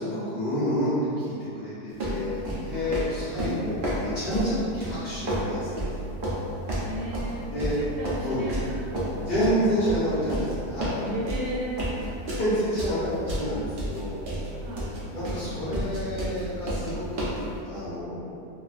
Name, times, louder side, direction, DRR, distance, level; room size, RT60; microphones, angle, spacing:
voice 1, 0.0-5.9 7.4-7.8 8.2-8.4 9.3-11.0 12.3-14.6 15.1-17.4 17.6-18.3, equal, 45° left, -14 dB, 1.0 m, -29 dB
sound 1, 2.0-17.5, right 1 dB, 65° right, 0.5 m, -31 dB
voice 2, 6.8-10.1 11.0-12.0 14.5-15.0, right 1 dB, 85° right, -4 dB, 1.1 m, -36 dB
2.7 x 2.4 x 2.4 m, 2.6 s
omnidirectional pair, 1.6 m